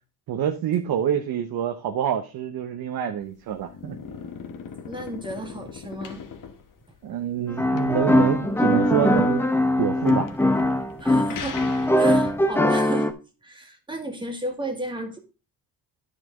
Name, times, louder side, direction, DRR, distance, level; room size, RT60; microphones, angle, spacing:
voice 1, 0.3-4.0 7.0-9.4 9.8-10.3, right 9 dB, 55° right, 6 dB, 1.0 m, -26 dB
sound 1, 3.2-12.5, left 6 dB, 50° left, 1.4 m, -41 dB
voice 2, 4.8-6.2 11.0-11.6 12.0-13.1 13.4-15.2, right 1 dB, 10° right, 3 dB, 2.1 m, -33 dB
sound 2, 7.5-13.1, left 1 dB, 5° left, 0.8 m, -21 dB
10.0 x 6.5 x 3.7 m, 0.33 s
cardioid pair, 120°, 42 cm